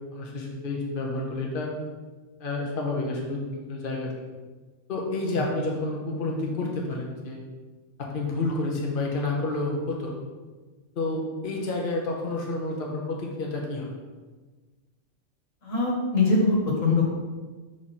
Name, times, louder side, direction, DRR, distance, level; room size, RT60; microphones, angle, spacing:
voice 1, 0.1-1.7 2.4-3.4 3.7-4.1 4.9-7.4 8.0-10.2 11.0-14.0, left 2 dB, 45° left, -1 dB, 1.1 m, -29 dB
voice 2, 15.6-17.1, left 3 dB, 85° left, -3 dB, 1.9 m, -22 dB
6.0 x 4.9 x 4.2 m, 1.3 s
omnidirectional pair, 1.3 m